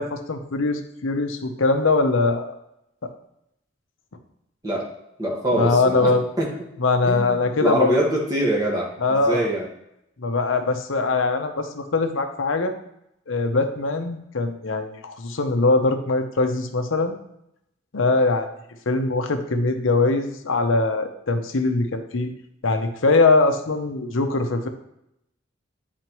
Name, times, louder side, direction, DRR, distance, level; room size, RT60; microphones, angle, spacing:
voice 1, 0.0-2.6 5.5-6.2 6.8-7.9 9.0-9.5 10.2-12.7 13.3-17.2 17.9-18.5 18.9-22.3 22.6-24.7, left 3 dB, 85° left, 6 dB, 0.7 m, -22 dB
voice 2, 5.2-6.5 7.0-9.7, right 1 dB, 20° right, -4 dB, 1.5 m, -24 dB
9.1 x 4.2 x 3.0 m, 0.80 s
head